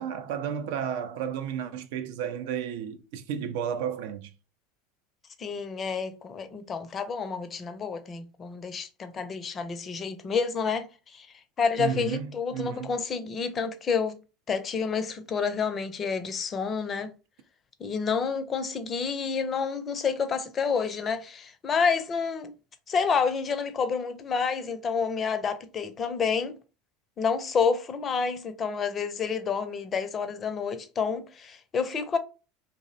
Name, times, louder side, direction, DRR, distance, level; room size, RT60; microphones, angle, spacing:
voice 1, 0.0-4.3 11.8-13.0, right 8 dB, 70° right, 0.3 m, -32 dB
voice 2, 5.4-11.3 11.6-14.2 14.5-17.1 17.8-22.5 22.9-26.5 27.2-32.2, left 5 dB, 35° left, 0.4 m, -29 dB
2.5 x 2.0 x 2.6 m
hypercardioid pair, 80°, 0 cm